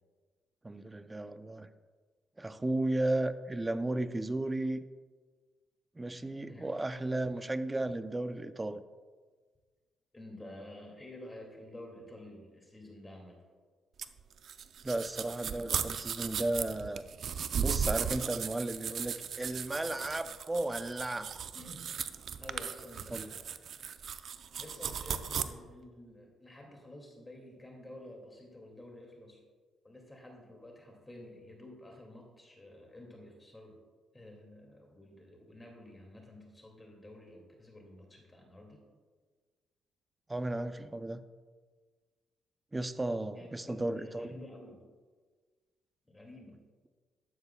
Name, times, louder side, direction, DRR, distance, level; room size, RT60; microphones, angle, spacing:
voice 1, 0.6-1.7 2.4-4.8 6.0-8.8 14.8-17.0 17.5-21.3 23.1-23.3 40.3-41.2 42.7-44.4, right 2 dB, 15° right, 11 dB, 0.6 m, -34 dB
voice 2, 10.1-13.4 21.5-21.9 22.4-23.8 24.6-29.4 29.8-33.8 34.1-38.8 43.3-44.8 46.0-46.6, left 1 dB, 15° left, 0 dB, 2.4 m, -50 dB
sound 1, 14.0-25.4, right 7 dB, 60° right, 0.5 m, -36 dB
12.5 x 12.0 x 2.3 m, 1.5 s
cardioid pair, 90°, 0 cm